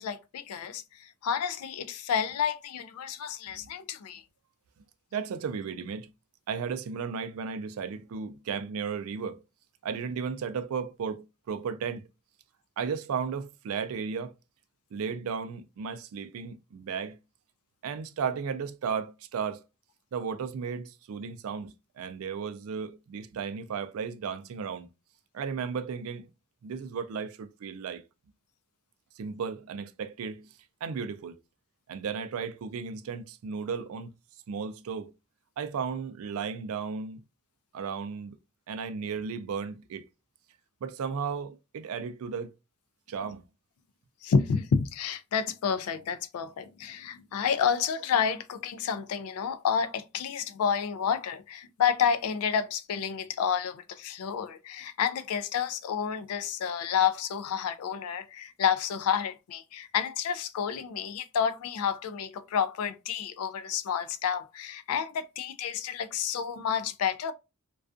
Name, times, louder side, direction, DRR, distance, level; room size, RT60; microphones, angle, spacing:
voice 1, 0.0-4.2 44.2-67.3, left 7 dB, 75° left, 0.3 m, -30 dB
voice 2, 5.1-6.1 6.5-9.4 9.8-12.0 12.8-14.3 14.9-17.2 17.8-19.6 20.1-24.9 25.3-26.3 26.6-28.0 29.2-30.5 30.8-31.3 31.9-34.1 34.5-35.1 35.6-37.2 37.7-38.4 38.7-40.0 40.8-42.5 43.1-43.5, right 6 dB, 70° right, 0.3 m, -34 dB
2.3 x 2.3 x 2.4 m
head